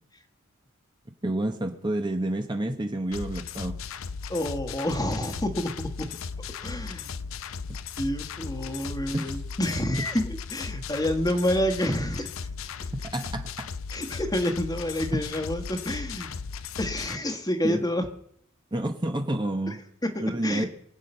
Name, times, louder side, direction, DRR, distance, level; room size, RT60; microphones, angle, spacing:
voice 1, 1.2-3.7 9.1-9.4 13.1-13.7 17.6-17.8 18.7-19.8 20.2-20.7, right 1 dB, 20° right, 5 dB, 1.0 m, -29 dB
sound 1, 3.1-17.2, left 5 dB, 75° left, 0.6 m, -36 dB
voice 2, 4.3-6.1 6.6-7.1 8.0-12.3 13.9-16.4 16.8-18.1 19.7-19.8 20.0-20.7, left 1 dB, 20° left, 7 dB, 1.5 m, -28 dB
24.0 x 8.4 x 5.5 m, 0.69 s
head